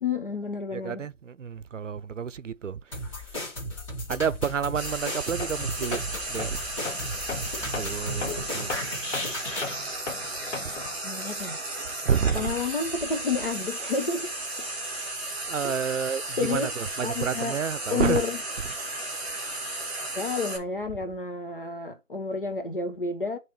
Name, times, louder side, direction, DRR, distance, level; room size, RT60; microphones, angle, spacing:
voice 1, 0.0-1.0 11.0-11.6 12.3-14.4 16.4-16.7 17.0-17.6 17.9-18.4 20.1-23.4, left 4 dB, 45° left, 0.9 m, -30 dB
voice 2, 0.7-2.8 4.1-6.6 7.6-8.7 12.0-12.5 15.5-18.2, right 7 dB, 70° right, 0.6 m, -29 dB
sound 1, 2.9-9.8, left 1 dB, 25° left, 2.6 m, -35 dB
Frying (food), 4.7-20.6, right 2 dB, 5° right, 1.0 m, -34 dB
Tools, 5.4-5.6 5.9-11.0, left 4 dB, 65° left, 1.1 m, -37 dB
8.8 x 3.2 x 4.3 m
hypercardioid pair, 175°, 39 cm